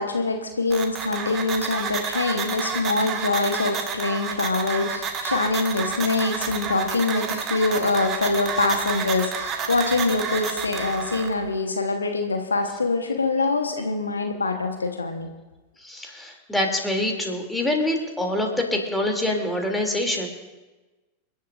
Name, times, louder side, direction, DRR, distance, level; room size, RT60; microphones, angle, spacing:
voice 1, 0.0-15.3, left 3 dB, 75° left, 4 dB, 1.3 m, -24 dB
sound 1, 0.7-11.3, right 6 dB, 30° right, 1.6 m, -30 dB
voice 2, 15.8-20.3, left 1 dB, 5° left, 1 dB, 3.0 m, -25 dB
29.5 x 11.0 x 2.6 m, 1.2 s
figure-of-eight pair, 90°, 0 cm